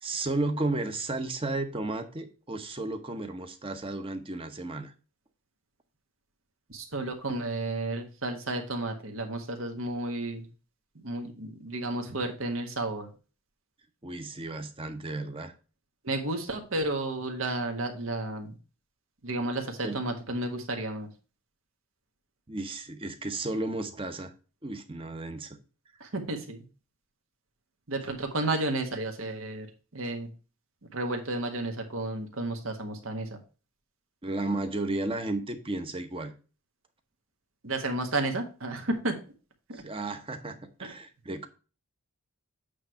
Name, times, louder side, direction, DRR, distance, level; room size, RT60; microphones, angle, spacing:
voice 1, 0.0-4.9 14.0-15.5 19.8-20.0 22.5-24.3 24.6-25.6 34.2-36.3 39.8-41.5, right 2 dB, 25° right, 7 dB, 0.9 m, -33 dB
voice 2, 6.7-10.5 11.0-13.1 16.0-18.5 19.2-21.1 26.0-26.6 27.9-29.7 29.9-30.3 30.9-33.4 37.6-39.2 39.7-39.8, right 2 dB, 70° right, 4 dB, 1.6 m, -32 dB
8.6 x 3.3 x 5.7 m, 0.34 s
head